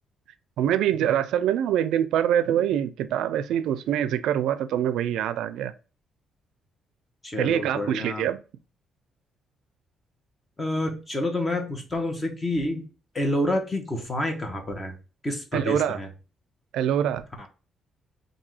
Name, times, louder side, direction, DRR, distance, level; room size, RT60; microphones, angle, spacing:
voice 1, 0.6-5.7 7.4-8.4 15.5-16.0 16.7-17.5, right 10 dB, 85° right, 0.4 m, -24 dB
voice 2, 7.2-8.3 10.6-12.8 13.1-14.9 15.2-16.1, left 1 dB, 25° left, 1.3 m, -28 dB
3.7 x 2.7 x 4.7 m
cardioid pair, 90°, 0 cm